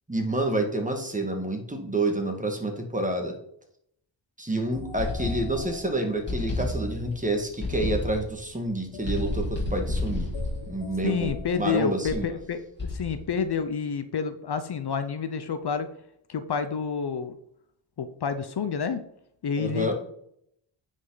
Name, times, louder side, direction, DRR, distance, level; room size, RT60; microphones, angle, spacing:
voice 1, 0.1-3.4 4.4-10.3 10.7-12.3 19.6-19.9, right 1 dB, 15° right, 3 dB, 2.0 m, -28 dB
sound 1, 4.7-7.7 8.9-12.2, left 5 dB, 80° left, 1.3 m, -45 dB
sound 2, 5.0-5.8 6.3-7.2 7.6-8.4 9.0-11.6 12.0-12.4 12.8-13.3, left 2 dB, 20° left, 3.6 m, -31 dB
voice 2, 11.0-15.9 16.3-17.4 18.0-19.0 19.4-19.9, left 6 dB, 55° left, 10 dB, 0.8 m, -29 dB
9.5 x 5.5 x 4.0 m, 0.71 s
cardioid pair, 80°, 47 cm